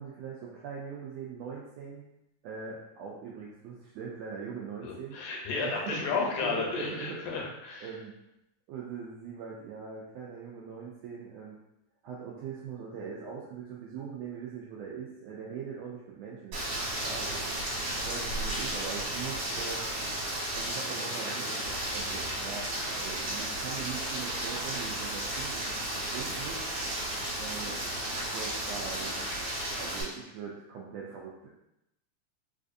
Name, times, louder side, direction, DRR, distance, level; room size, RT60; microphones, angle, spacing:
voice 1, 0.0-2.1 2.4-5.2 5.5-7.4 7.8-8.1 8.7-11.6 12.0-17.6 18.0-19.8 20.6-26.6 27.4-27.8 28.3-29.2 29.8-31.5, right 6 dB, 85° right, -4 dB, 1.4 m, -41 dB
voice 2, 4.8-7.9, left 5 dB, 80° left, -1 dB, 2.2 m, -33 dB
Rain, 16.5-30.0, right 1 dB, 60° right, 2.1 m, -34 dB
4.7 x 2.5 x 2.5 m, 0.86 s
omnidirectional pair, 3.5 m